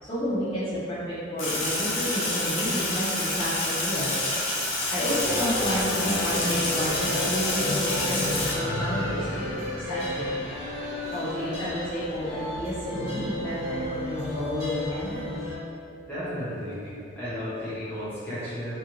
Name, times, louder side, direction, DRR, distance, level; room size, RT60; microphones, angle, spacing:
voice 1, 0.0-4.1 4.9-9.4 9.9-10.3 11.1-15.2, equal, 30° left, -12 dB, 0.5 m, -30 dB
Sink (filling or washing), 1.4-8.5, left 2 dB, 80° left, 0.6 m, -28 dB
sound 1, 5.2-15.6, left 1 dB, 65° right, 1.0 m, -32 dB
voice 2, 16.1-16.9 17.1-18.7, equal, 10° left, -12 dB, 0.8 m, -33 dB
2.4 x 2.1 x 2.9 m, 2.6 s
head